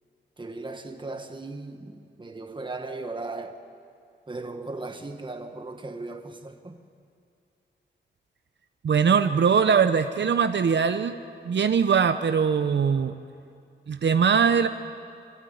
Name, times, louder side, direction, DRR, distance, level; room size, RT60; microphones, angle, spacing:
voice 1, 0.4-3.6 4.3-6.8 11.4-11.5, right 3 dB, 25° right, 1.5 m, -37 dB
voice 2, 8.8-11.1 11.4-13.1 13.9-14.7, right 6 dB, 75° right, 0.7 m, -21 dB
24.0 x 15.5 x 9.4 m
wide cardioid pair, 115°, 19 cm